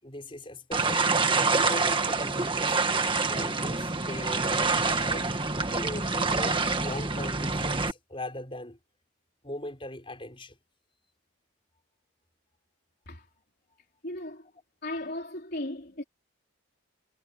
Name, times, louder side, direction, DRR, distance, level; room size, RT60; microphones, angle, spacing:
voice 1, 0.0-1.1 1.5-2.8 3.3-4.6 5.1-5.3 5.7-8.8 9.4-10.6, left 1 dB, 25° left, 5.5 m, -40 dB
sound 1, 0.7-7.9, right 3 dB, 25° right, 1.7 m, -26 dB
voice 2, 14.0-14.5 14.8-16.0, left 1 dB, 45° left, 3.8 m, -36 dB
head